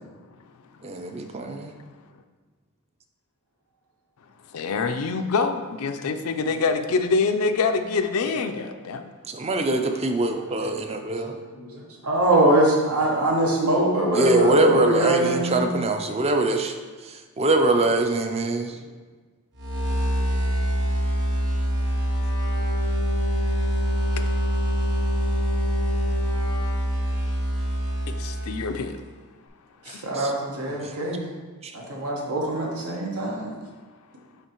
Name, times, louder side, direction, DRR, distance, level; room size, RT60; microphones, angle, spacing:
voice 1, 0.8-1.7 9.3-11.3 14.1-16.7 17.0-18.8 30.1-30.3 30.7-31.0 31.6-31.7, right 2 dB, 30° right, 0.5 m, -23 dB
voice 2, 4.5-9.1 18.7-19.0 24.2-24.3 28.1-29.0 29.9-30.0 33.2-33.3, left 4 dB, 80° left, 0.4 m, -26 dB
voice 3, 11.2-15.9 29.9-31.3 31.7-33.5, right 1 dB, 80° right, 1.2 m, -23 dB
sound 1, 19.6-29.1, equal, 55° right, 1.2 m, -25 dB
10.0 x 3.4 x 3.0 m
head